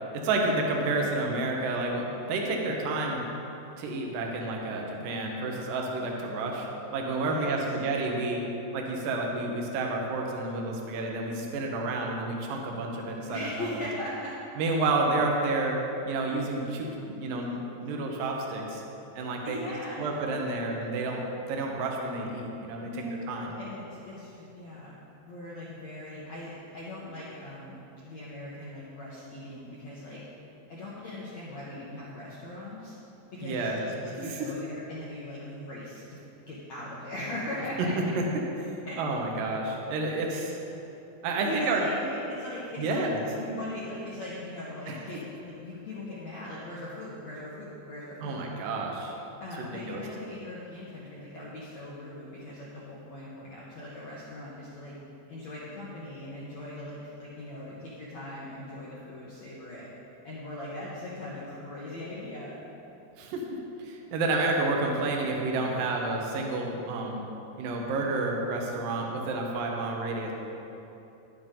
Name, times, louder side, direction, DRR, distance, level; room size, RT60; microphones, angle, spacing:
voice 1, 0.1-3.2 3.8-8.4 8.7-13.7 14.6-15.8 16.0-18.8 19.1-19.6 20.0-21.2 21.5-22.9 23.3-23.5 33.4-34.5 38.2-38.3 38.6-38.7 39.0-40.6 41.2-41.8 42.8-43.2 44.9-45.0 48.2-49.2 49.6-50.0 63.2-67.2 67.6-70.3, right 2 dB, 70° right, 0 dB, 2.4 m, -30 dB
voice 2, 7.2-7.6 13.3-14.4 16.3-16.4 19.4-20.2 22.9-24.9 25.3-27.8 28.0-30.2 30.7-32.9 33.3-36.2 36.5-38.1 38.8-39.0 40.2-40.4 41.4-43.0 43.3-45.2 45.4-48.5 49.4-55.0 55.3-59.9 60.2-62.6, left 1 dB, 80° left, -7 dB, 1.5 m, -39 dB
11.5 x 9.6 x 3.8 m, 2.9 s
omnidirectional pair, 5.1 m